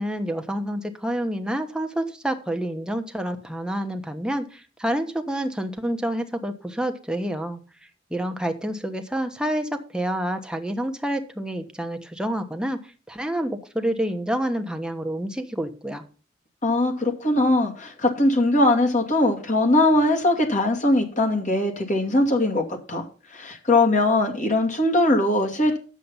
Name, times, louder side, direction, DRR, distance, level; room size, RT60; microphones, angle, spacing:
voice 1, 0.0-7.6 8.1-12.8 13.1-16.0, right 1 dB, 5° right, 6 dB, 1.2 m, -28 dB
voice 2, 16.6-23.0 23.3-25.8, left 2 dB, 45° left, 3 dB, 2.3 m, -21 dB
9.8 x 7.5 x 5.6 m, 0.37 s
head